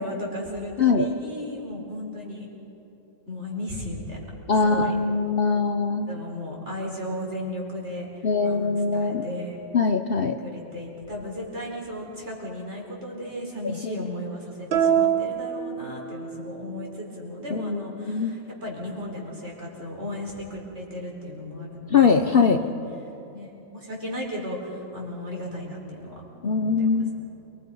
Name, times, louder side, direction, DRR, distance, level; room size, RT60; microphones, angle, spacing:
voice 1, 0.0-2.5 3.3-4.2 4.6-4.9 6.1-8.1 8.4-9.6 10.4-22.7 23.3-27.1, left 1 dB, 35° right, -2 dB, 4.8 m, -35 dB
voice 2, 0.8-1.1 4.5-6.2 8.2-9.2 9.7-10.4 13.6-13.9 17.5-18.4 21.9-22.6 26.4-27.1, left 5 dB, 85° left, 6 dB, 0.5 m, -22 dB
sound 1, 14.7-16.5, right 8 dB, 75° right, 1.9 m, -24 dB
28.5 x 21.0 x 5.5 m, 3.0 s
omnidirectional pair, 2.1 m